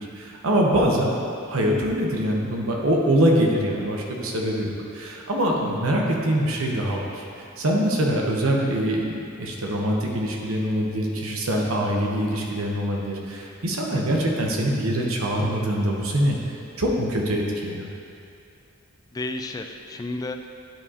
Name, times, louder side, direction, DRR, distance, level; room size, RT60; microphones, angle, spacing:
voice 1, 0.2-1.1 1.5-7.2 7.6-16.4 16.8-17.9, equal, 80° right, -1 dB, 1.0 m, -24 dB
voice 2, 13.9-14.2 19.1-20.5, left 2 dB, 20° left, 5 dB, 0.3 m, -32 dB
10.5 x 4.8 x 2.9 m, 2.5 s
head